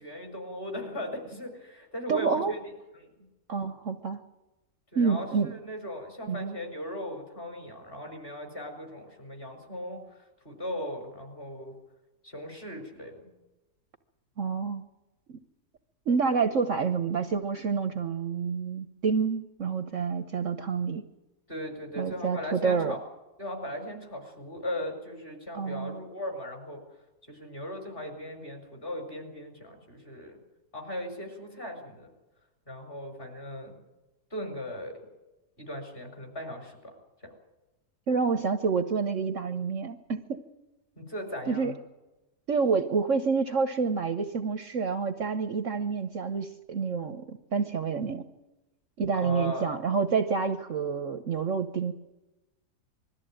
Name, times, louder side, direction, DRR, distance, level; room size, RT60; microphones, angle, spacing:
voice 1, 0.0-2.6 2.9-3.1 4.9-10.2 10.4-11.8 12.2-13.3 21.5-23.0 23.4-26.8 27.3-30.4 30.7-32.1 32.7-33.8 34.3-35.0 35.6-37.0 41.0-41.7 49.1-49.8, equal, 35° left, 3 dB, 5.4 m, -38 dB
voice 2, 2.1-2.5 3.5-4.2 4.9-5.5 6.3-6.5 14.4-14.8 15.3-15.4 16.1-21.0 22.0-23.0 25.5-25.9 38.1-40.2 41.5-41.7 42.5-48.2 49.0-51.9, right 5 dB, 55° right, 9 dB, 1.2 m, -28 dB
21.5 x 14.0 x 9.0 m, 1.0 s
omnidirectional pair, 1.7 m